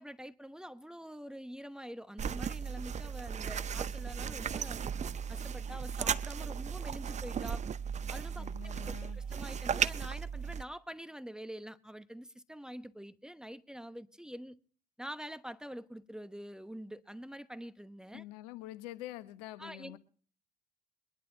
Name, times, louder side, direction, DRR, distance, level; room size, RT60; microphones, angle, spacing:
voice 1, 0.0-4.8 5.3-7.6 8.1-14.6 15.0-18.2 19.6-20.0, equal, 5° right, 1.0 m, -46 dB
sound 1, 2.2-10.6, right 7 dB, 35° right, 0.7 m, -36 dB
voice 2, 8.4-9.2 18.1-20.0, left 15 dB, 80° left, 1.1 m, -46 dB
23.0 x 11.0 x 2.9 m
hypercardioid pair, 60°, 20 cm